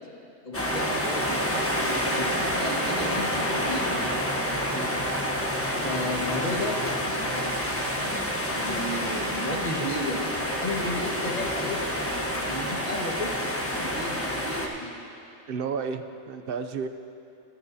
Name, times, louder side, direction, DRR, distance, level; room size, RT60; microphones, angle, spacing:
voice 1, 0.4-4.0 5.8-6.8 7.1-7.5 8.5-10.3 10.6-11.8 12.5-13.4 13.8-14.9, left 1 dB, 35° left, -2 dB, 1.6 m, -33 dB
sound 1, 0.5-14.7, equal, 15° left, 0.8 m, -28 dB
sound 2, 2.3-9.7, right 1 dB, 25° right, 0.9 m, -42 dB
voice 2, 15.5-16.9, right 5 dB, 60° right, 9 dB, 0.7 m, -32 dB
25.0 x 9.1 x 2.7 m, 2.8 s
omnidirectional pair, 1.2 m